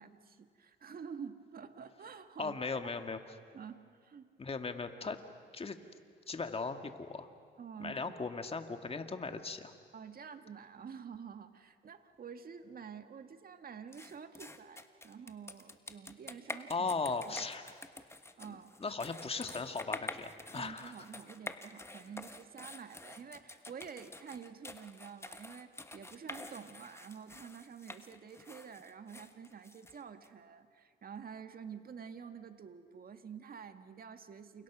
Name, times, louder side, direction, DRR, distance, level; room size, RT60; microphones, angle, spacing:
voice 1, 0.0-2.9 3.5-4.3 7.6-8.2 9.9-16.9 17.3-17.4 18.4-18.7 20.5-34.6, right 6 dB, 50° right, 8 dB, 1.9 m, -49 dB
voice 2, 2.4-3.4 4.4-5.2 5.5-5.8 6.3-7.3 7.8-9.7 16.7-17.7 18.8-20.9, left 4 dB, 30° left, 6 dB, 2.0 m, -38 dB
sound 1, 13.9-30.3, left 2 dB, 15° left, 1.4 m, -48 dB
30.0 x 28.5 x 6.2 m, 2.1 s
cardioid pair, 90°, 20 cm